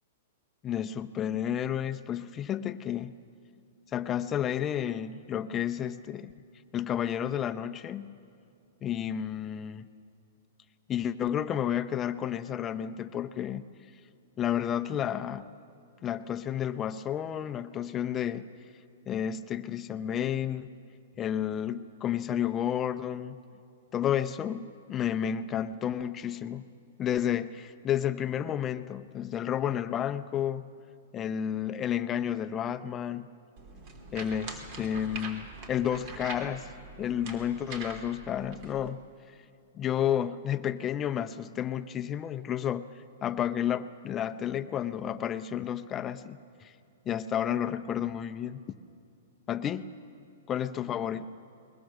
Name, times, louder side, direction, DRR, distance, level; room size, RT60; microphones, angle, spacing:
voice 1, 0.6-3.1 3.9-6.3 6.7-8.2 8.8-9.9 10.9-13.6 14.4-15.5 16.0-18.5 19.1-20.7 21.2-23.4 23.9-26.6 27.0-30.6 31.1-33.3 34.1-36.7 37.0-39.0 39.7-42.8 43.2-46.7 47.1-48.8 49.5-49.8 50.5-51.3, left 10 dB, 25° left, 10 dB, 0.7 m, -31 dB
sound 1, 33.6-38.9, right 3 dB, 45° right, 3.0 m, -43 dB
21.5 x 21.0 x 6.6 m, 2.4 s
hypercardioid pair, 135°, 0 cm